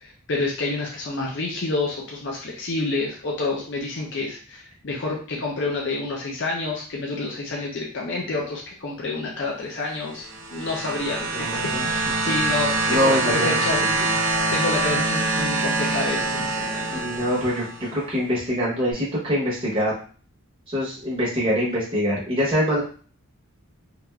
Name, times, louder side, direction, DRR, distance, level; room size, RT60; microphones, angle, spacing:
voice 1, 0.0-17.0, left 3 dB, 50° left, -2 dB, 0.5 m, -29 dB
sound 1, 10.1-17.9 18.9-19.0, right 2 dB, 80° right, 0.6 m, -25 dB
voice 2, 11.3-12.3 12.9-13.6 16.9-17.6 17.9-19.9 20.7-22.8, equal, 25° right, -6 dB, 0.8 m, -24 dB
3.2 x 2.5 x 2.2 m, 0.41 s
head